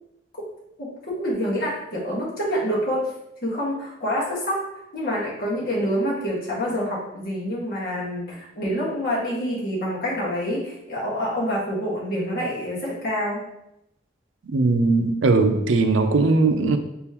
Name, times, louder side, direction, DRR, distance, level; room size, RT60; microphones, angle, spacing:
voice 1, 0.8-3.1 3.4-4.6 4.9-13.4, equal, 50° left, -6 dB, 1.6 m, -27 dB
voice 2, 14.4-16.8, right 3 dB, 90° right, 7 dB, 0.5 m, -19 dB
4.2 x 3.7 x 2.9 m, 0.83 s
head